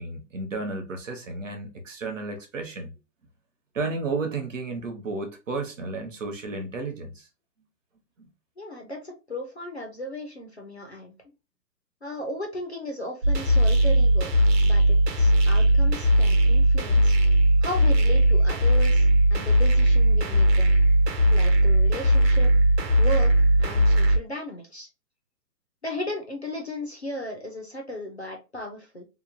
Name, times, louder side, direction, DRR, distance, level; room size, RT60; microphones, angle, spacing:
voice 1, 0.0-2.9 3.7-7.3, right 3 dB, 50° right, 0.7 m, -32 dB
voice 2, 8.6-11.2 12.0-14.3 14.6-17.1 17.6-20.8 21.3-22.5 23.0-23.3 23.6-24.9 25.8-29.1, left 1 dB, 45° left, 0.4 m, -36 dB
sound 1, 13.2-24.2, right 1 dB, 80° right, 1.0 m, -19 dB
2.9 x 2.1 x 2.4 m
hypercardioid pair, 180°, 49 cm